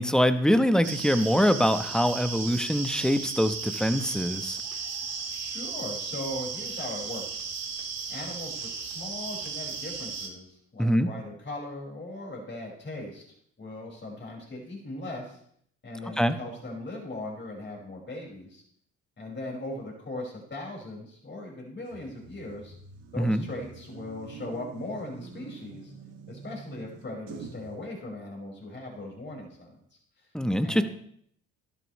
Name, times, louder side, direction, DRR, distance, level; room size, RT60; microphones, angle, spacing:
voice 1, 0.0-4.6 10.8-11.1 16.2-16.4 23.2-23.4 30.3-30.8, equal, ahead, 10 dB, 1.0 m, -24 dB
sound 1, 0.8-10.3, right 5 dB, 60° right, 2.1 m, -35 dB
voice 2, 5.3-7.7 8.1-13.2 13.6-15.4 15.8-18.6 19.2-22.7 23.1-25.9 26.3-29.8 30.2-30.3 30.6-30.8, left 1 dB, 40° left, -2 dB, 5.3 m, -39 dB
sound 2, 21.9-27.7, right 5 dB, 85° right, 2.1 m, -46 dB
12.5 x 12.0 x 3.2 m, 0.65 s
supercardioid pair, 65°, 30 cm